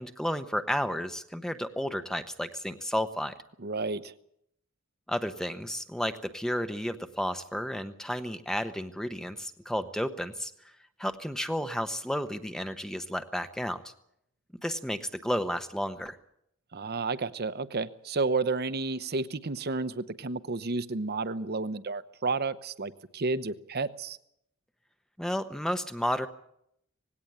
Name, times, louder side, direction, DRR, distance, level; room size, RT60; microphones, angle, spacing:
voice 1, 0.0-3.3 5.1-10.5 11.0-13.8 14.6-16.2 25.2-26.3, equal, 5° left, 9 dB, 0.8 m, -32 dB
voice 2, 3.6-4.1 16.7-24.2, right 3 dB, 50° right, 14 dB, 0.9 m, -31 dB
19.0 x 17.0 x 8.7 m, 0.76 s
head